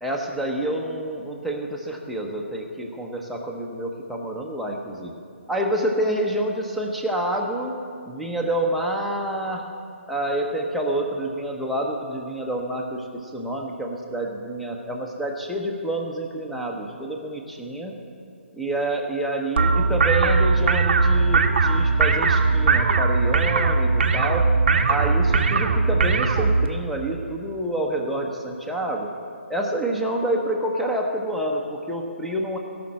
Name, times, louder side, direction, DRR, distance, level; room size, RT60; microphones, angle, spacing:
voice 1, 0.0-5.1 5.5-9.7 10.1-17.9 18.5-24.5 24.9-29.1 29.5-32.6, right 1 dB, ahead, 0 dB, 0.8 m, -28 dB
sound 1, 19.6-26.7, right 4 dB, 55° right, 0.8 m, -19 dB
17.5 x 5.9 x 6.4 m, 2.4 s
figure-of-eight pair, 145°, 7 cm